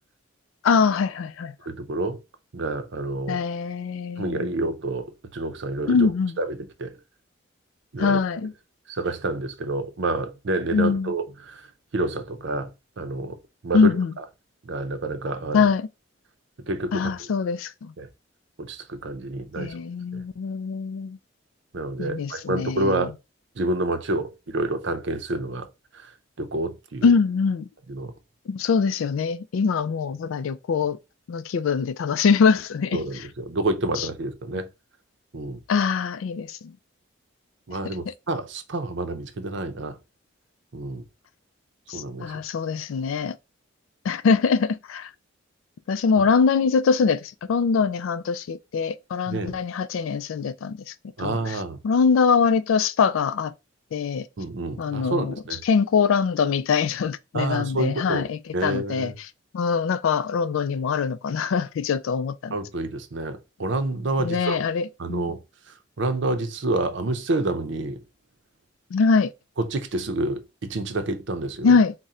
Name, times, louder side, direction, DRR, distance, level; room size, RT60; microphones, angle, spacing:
voice 1, 0.6-1.5 3.3-4.5 5.9-6.3 8.0-8.5 10.7-11.1 13.7-14.1 15.5-15.9 16.9-17.9 19.6-21.2 22.0-23.1 27.0-27.7 28.5-31.0 31.3-33.0 34.0-34.1 35.7-36.7 38.1-38.2 41.9-43.4 44.0-45.1 45.9-50.8 51.2-51.6 51.8-53.5 53.9-54.3 54.8-55.3 55.6-59.1 59.5-62.5 64.2-65.3 68.9-69.3 71.6-71.9, left 5 dB, 80° left, 0.3 m, -23 dB
voice 2, 1.7-2.2 2.5-3.4 4.2-7.0 7.9-8.2 8.9-11.7 11.9-12.7 13.0-13.4 13.6-14.2 14.6-15.7 16.7-17.1 18.0-18.1 18.6-19.8 20.1-20.2 21.7-23.1 23.6-25.7 25.9-26.1 26.4-27.1 27.9-28.1 32.9-34.7 35.3-35.6 37.7-40.0 40.7-41.0 41.9-42.4 49.3-49.6 51.2-51.8 54.4-55.6 57.3-58.3 58.5-59.2 62.5-64.6 65.0-65.4 66.0-68.0 69.6-71.8, right 2 dB, 60° right, 0.6 m, -28 dB
3.6 x 2.1 x 4.1 m
head